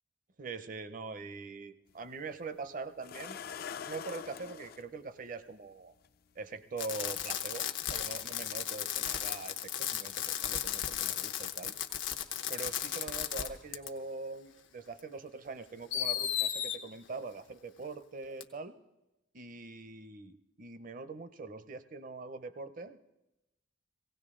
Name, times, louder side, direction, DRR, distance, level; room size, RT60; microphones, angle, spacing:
voice 1, 0.4-3.4 3.8-5.9 6.4-11.7 12.5-18.7 19.3-23.0, right 3 dB, 45° right, 13 dB, 0.6 m, -43 dB
sound 1, 1.9-2.0 3.0-4.8 6.0-6.1 6.7-6.8, left 7 dB, 50° left, 0.4 m, -43 dB
Fireworks, 6.8-13.5 13.7-13.9 15.0-15.1 15.9-16.8 18.4-18.5, left 11 dB, 85° left, 0.9 m, -35 dB
17.0 x 17.0 x 3.7 m, 0.94 s
head